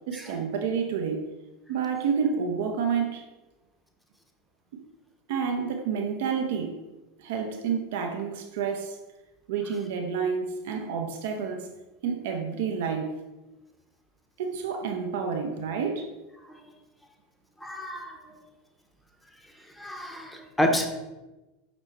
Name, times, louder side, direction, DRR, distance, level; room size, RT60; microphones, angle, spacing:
voice 1, 0.1-1.3 1.7-3.2 5.3-6.8 7.2-9.0 9.5-11.7 12.0-13.1 14.4-16.1, right 6 dB, 60° right, 4 dB, 0.5 m, -29 dB
voice 2, 17.6-18.4 19.8-20.9, equal, 5° left, 4 dB, 0.7 m, -29 dB
5.3 x 2.9 x 3.3 m, 1.1 s
figure-of-eight pair, 80°, 0 cm